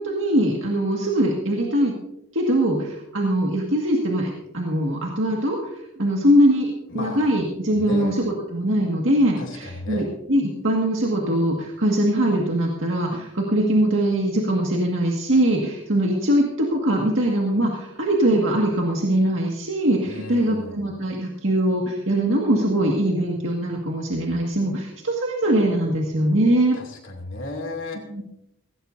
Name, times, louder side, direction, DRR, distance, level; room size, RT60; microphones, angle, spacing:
voice 1, 0.0-1.9 2.3-26.8 28.1-28.2, right 1 dB, 70° right, -1 dB, 1.9 m, -22 dB
voice 2, 6.9-7.3 7.8-8.2 9.4-10.1 20.0-20.8 26.7-28.0, left 2 dB, 70° left, 2 dB, 2.7 m, -34 dB
17.0 x 17.0 x 2.7 m, 0.83 s
head